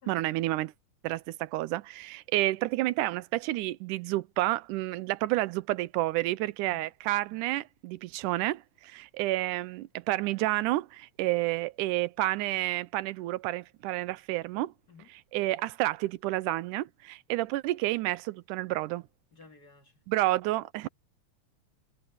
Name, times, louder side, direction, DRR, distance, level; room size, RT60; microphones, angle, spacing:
voice 1, 0.1-0.7 1.0-14.7 15.3-19.0 20.1-20.9, right 17 dB, 85° right, 2.2 m, -30 dB
voice 2, 19.3-20.0, left 5 dB, 35° left, 2.5 m, -54 dB
omnidirectional pair, 3.5 m